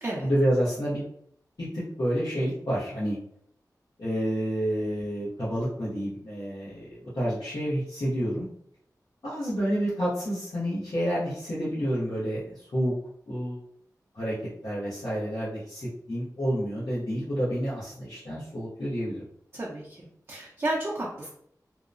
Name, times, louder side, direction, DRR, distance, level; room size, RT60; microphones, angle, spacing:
voice 1, 0.2-1.0 1.6-3.2 4.0-8.5 9.2-12.9 13.3-13.6 14.1-14.3 14.6-19.2, equal, 70° left, -10 dB, 0.9 m, -29 dB
voice 2, 19.5-21.3, right 1 dB, 40° right, -5 dB, 0.6 m, -32 dB
2.8 x 2.0 x 2.5 m, 0.67 s
wide cardioid pair, 70°, 7 cm